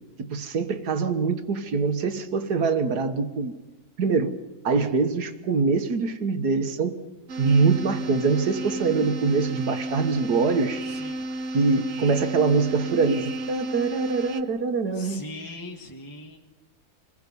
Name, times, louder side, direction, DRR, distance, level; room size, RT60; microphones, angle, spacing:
voice 1, 0.2-3.5 4.0-4.4 4.6-6.9 7.4-10.8 11.5-15.2, right 4 dB, 90° right, 8 dB, 1.9 m, -24 dB
sound 1, 7.3-14.4, right 1 dB, 55° right, 1.2 m, -32 dB
voice 2, 10.8-11.3 14.9-16.4, left 2 dB, 15° left, 1 dB, 1.6 m, -40 dB
28.0 x 20.5 x 5.4 m, 1.2 s
omnidirectional pair, 1.7 m